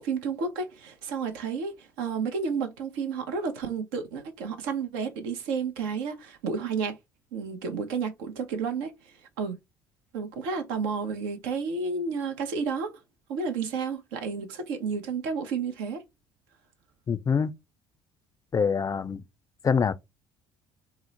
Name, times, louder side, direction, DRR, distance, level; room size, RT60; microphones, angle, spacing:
voice 1, 0.0-7.0 7.3-8.9 9.4-9.6 10.1-12.9 13.3-16.0, right 5 dB, 75° right, 0.7 m, -31 dB
voice 2, 17.1-17.5 18.5-19.2 19.6-19.9, left 6 dB, 30° left, 0.4 m, -25 dB
2.9 x 2.0 x 3.9 m
hypercardioid pair, 55°, 12 cm